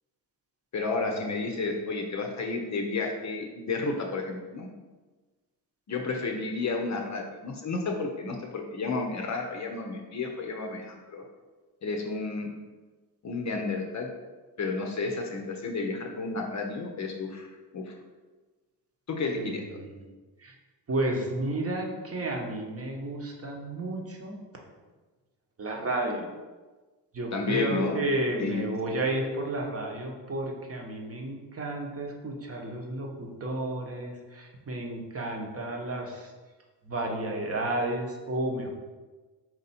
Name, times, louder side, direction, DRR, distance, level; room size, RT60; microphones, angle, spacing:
voice 1, 0.7-4.7 5.9-11.2 11.8-12.5 13.2-14.1 14.6-17.9 19.1-19.6 27.3-28.1 28.4-28.7, left 3 dB, 40° left, 2 dB, 0.7 m, -31 dB
voice 2, 19.4-19.9 20.4-20.5 20.9-24.4 25.6-26.3 27.1-36.3 36.9-38.7, right 1 dB, 30° right, 0 dB, 1.0 m, -32 dB
4.4 x 2.7 x 4.2 m, 1.3 s
supercardioid pair, 75°, 45 cm